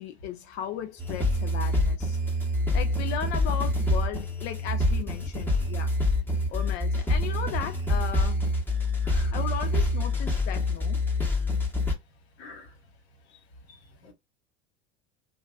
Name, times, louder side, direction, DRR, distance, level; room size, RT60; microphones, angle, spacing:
voice 1, 0.0-2.2 2.7-5.9 6.5-8.4 9.3-11.0, left 9 dB, 50° left, 0.5 m, -36 dB
sound 1, 1.0-11.9, left 1 dB, 5° left, 1.0 m, -26 dB
voice 2, 5.2-6.0 6.3-6.5 9.0-9.4 12.4-12.8 13.2-14.1, left 3 dB, 70° left, 1.2 m, -50 dB
2.8 x 2.3 x 2.4 m
hypercardioid pair, 80°, 33 cm